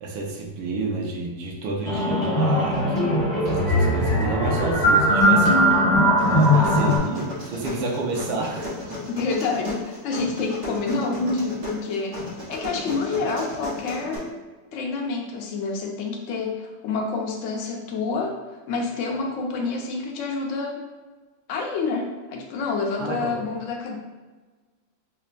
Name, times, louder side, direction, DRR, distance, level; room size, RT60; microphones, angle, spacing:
voice 1, 0.0-5.6 6.2-8.7 23.0-23.3, right 3 dB, 85° right, 0 dB, 1.4 m, -29 dB
sound 1, 1.9-7.0, equal, 40° left, 1.6 m, -19 dB
sound 2, 6.2-14.2, left 1 dB, 40° right, 1.0 m, -35 dB
voice 2, 9.1-14.4 14.7-20.8 21.5-24.0, left 4 dB, 85° left, 0 dB, 0.6 m, -28 dB
5.3 x 2.2 x 2.4 m, 1.3 s
omnidirectional pair, 1.9 m